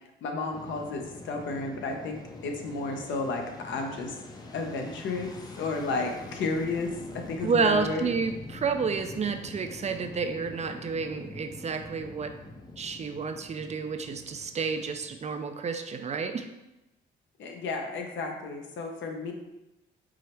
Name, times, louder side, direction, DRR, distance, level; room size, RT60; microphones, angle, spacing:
voice 1, 0.2-4.1 4.5-6.9 7.1-8.1 17.4-19.3, left 3 dB, 70° left, 2 dB, 0.8 m, -32 dB
Fixed-wing aircraft airplane, 0.5-15.7, left 2 dB, 20° left, 0.5 m, -44 dB
voice 2, 7.4-12.3 12.8-16.5, right 5 dB, 35° right, 7 dB, 0.4 m, -30 dB
4.8 x 2.0 x 4.4 m, 0.95 s
cardioid pair, 90°, 20 cm